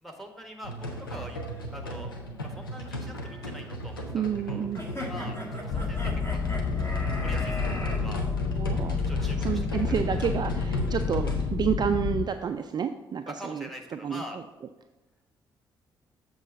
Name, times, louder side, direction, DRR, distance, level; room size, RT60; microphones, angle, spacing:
voice 1, 0.0-1.4 1.7-2.1 2.4-4.7 5.0-5.4 5.6-6.6 7.2-8.3 9.0-10.0 13.2-14.4, equal, ahead, 3 dB, 1.5 m, -44 dB
sound 1, 0.6-11.5, equal, 90° left, 0.6 m, -36 dB
voice 2, 4.1-4.8 8.5-9.0 9.4-14.4, right 7 dB, 40° right, 8 dB, 0.4 m, -30 dB
sound 2, 4.7-8.0, left 1 dB, 20° left, 1.8 m, -38 dB
sound 3, 5.7-12.3, left 5 dB, 50° left, 0.6 m, -29 dB
7.3 x 3.9 x 5.4 m, 1.1 s
figure-of-eight pair, 45°, 11 cm